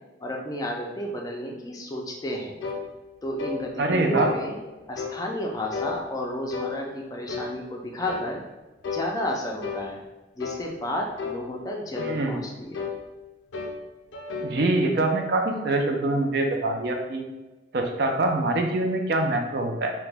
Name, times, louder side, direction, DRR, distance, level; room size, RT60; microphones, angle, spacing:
voice 1, 0.2-2.6 3.2-4.6 4.9-8.4 8.9-10.0 10.4-12.9, equal, 20° left, 0 dB, 0.4 m, -32 dB
sound 1, 2.6-2.9 3.4-3.6 4.2-4.4 5.0-5.2 5.7-6.0 6.5-6.8 7.3-7.5 8.1-8.3 8.8-9.1 9.6-9.9 10.4-10.6 11.2-11.4 11.9-12.2 12.7-13.0 13.5-13.8 14.1-14.6, left 5 dB, 85° left, 0.4 m, -32 dB
voice 2, 3.8-4.3 12.0-12.4 14.4-17.2 17.7-19.9, right 2 dB, 60° right, 3 dB, 0.4 m, -24 dB
2.9 x 2.1 x 3.3 m, 1.1 s
head